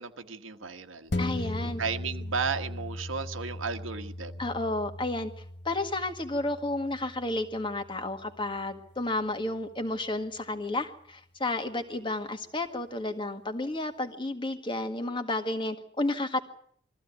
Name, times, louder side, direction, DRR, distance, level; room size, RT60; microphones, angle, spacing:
voice 1, 0.0-1.1 1.6-4.3, right 5 dB, 85° right, 6 dB, 1.4 m, -34 dB
sound 1, 1.1-9.9 10.4-10.5, left 1 dB, 55° left, 1.1 m, -39 dB
voice 2, 1.2-1.8 4.4-5.3 5.7-16.4, left 2 dB, 25° left, 6 dB, 1.8 m, -31 dB
22.5 x 15.0 x 9.4 m, 0.65 s
head